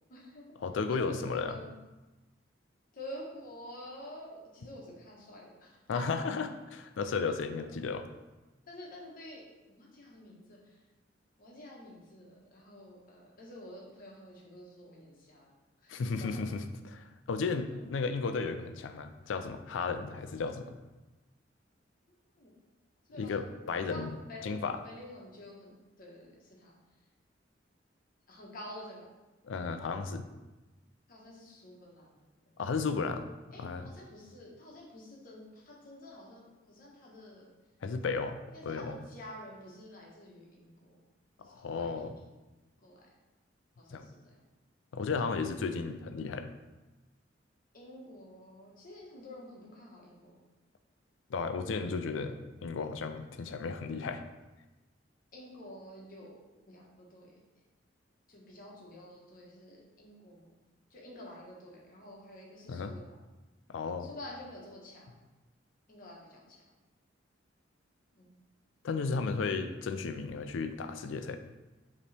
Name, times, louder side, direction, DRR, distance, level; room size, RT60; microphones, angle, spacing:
voice 1, 0.1-0.4 0.9-1.7 2.9-6.2 8.7-10.7 11.4-15.5 15.8-16.5 22.3-22.5 23.1-23.4 23.8-25.7 26.0-26.7 28.3-29.1 31.1-32.5 33.5-37.5 38.5-40.9 41.4-42.5 42.8-43.0 43.8-44.4 47.7-50.4 55.3-56.3 56.7-57.3 58.3-60.5 60.9-63.2 64.0-65.1 65.9-66.6 68.2-68.4 69.1-69.2, left 1 dB, 50° left, -3 dB, 1.1 m, -49 dB
voice 2, 0.6-1.6 5.9-8.0 15.9-20.8 23.2-24.1 24.4-24.8 29.4-30.3 32.6-33.3 33.6-33.9 37.8-38.4 38.6-39.0 41.4-42.1 43.9-44.1 44.9-46.5 51.3-54.2 62.7-62.9 63.7-64.1 68.8-71.4, left 4 dB, 90° left, 8 dB, 0.4 m, -34 dB
5.1 x 3.0 x 3.3 m, 1.1 s
head